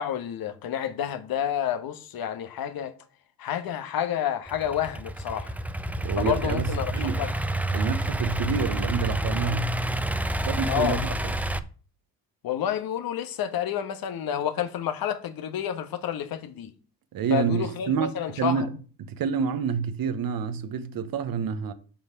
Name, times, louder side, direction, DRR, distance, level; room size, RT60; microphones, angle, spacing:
voice 1, 0.0-2.9 3.4-5.5 6.2-7.3 10.7-11.0 12.4-16.7 17.3-18.7, left 9 dB, 70° left, 1.4 m, -29 dB
Idling / Accelerating revving vroom, 4.5-11.6, right 1 dB, 5° right, 0.8 m, -29 dB
voice 2, 6.0-7.2 7.7-9.7 10.5-11.3 17.1-18.7 19.0-21.7, right 7 dB, 65° right, 1.2 m, -28 dB
7.3 x 5.6 x 7.4 m
supercardioid pair, 60°, 37 cm